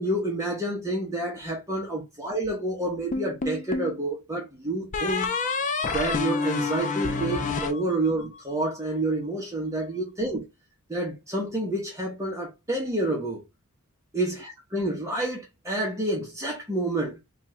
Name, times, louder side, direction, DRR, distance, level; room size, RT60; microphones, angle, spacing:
voice 1, 0.0-5.3 5.9-10.5 10.9-13.4 14.1-17.2, right 1 dB, 15° right, 0.9 m, -29 dB
sound 1, 3.1-4.0 4.9-8.4, left 4 dB, 35° left, 0.4 m, -28 dB
3.0 x 2.4 x 4.1 m
head